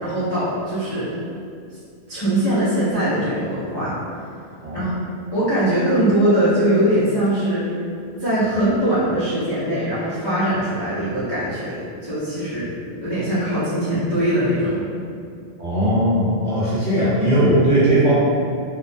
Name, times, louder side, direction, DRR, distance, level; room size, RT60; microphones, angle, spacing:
voice 1, 0.0-1.1 2.1-4.3 4.7-5.0 5.3-7.6 8.2-12.7 13.0-14.9, right 1 dB, 40° left, -14 dB, 0.3 m, -21 dB
voice 2, 15.6-18.1, right 1 dB, 50° right, -12 dB, 0.6 m, -18 dB
2.3 x 2.1 x 2.5 m, 2.4 s
omnidirectional pair, 1.3 m